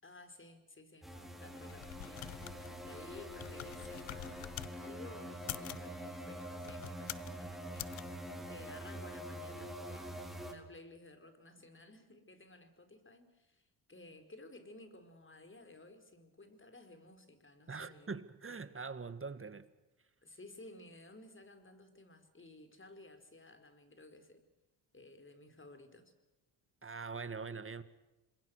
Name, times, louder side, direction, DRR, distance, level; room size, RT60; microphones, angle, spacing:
voice 1, 0.0-4.5 4.7-18.1 20.2-24.4 24.9-26.1, left 2 dB, 25° left, 4.5 m, -56 dB
sound 1, 1.0-10.5, equal, ahead, 4.4 m, -45 dB
sound 2, 1.5-4.7 5.3-5.9 6.6-7.3 7.7-8.0, left 16 dB, 75° left, 1.0 m, -46 dB
voice 2, 17.7-19.7 26.8-27.8, right 4 dB, 25° right, 1.9 m, -43 dB
27.0 x 22.0 x 6.5 m
supercardioid pair, 70°, 48 cm